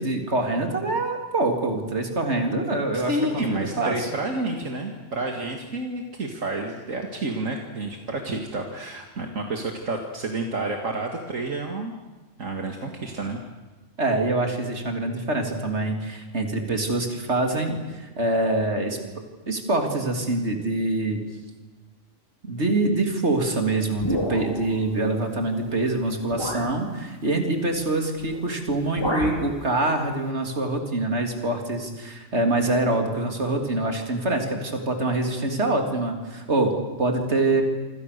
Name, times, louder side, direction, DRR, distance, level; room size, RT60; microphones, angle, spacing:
voice 1, 0.0-4.1 14.0-19.0 19.5-21.2 22.4-37.6, right 2 dB, 55° right, 4 dB, 3.6 m, -25 dB
voice 2, 2.9-11.9 12.4-13.4, right 2 dB, 70° right, 2 dB, 2.6 m, -29 dB
sound 1, 24.0-24.8 25.7-25.8 26.3-26.8 28.2-28.4 28.7-29.5, left 1 dB, 20° left, 3.6 m, -29 dB
27.5 x 26.5 x 6.9 m, 1.2 s
omnidirectional pair, 1.4 m